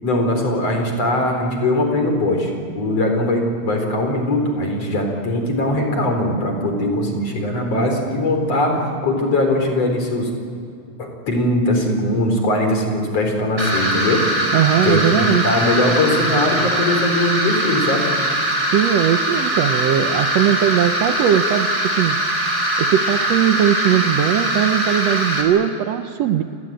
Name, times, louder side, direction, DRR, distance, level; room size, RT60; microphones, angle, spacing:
voice 1, 0.0-10.3 11.0-14.2 14.8-18.1, left 1 dB, 55° left, 3 dB, 5.3 m, -20 dB
sound 1, 13.6-25.4, right 1 dB, 20° right, 4.4 m, -21 dB
voice 2, 14.5-15.4 18.7-21.7 22.0-22.2 22.8-26.4, right 10 dB, 70° right, 8 dB, 1.8 m, -19 dB
29.5 x 19.5 x 9.0 m, 2.4 s
omnidirectional pair, 3.5 m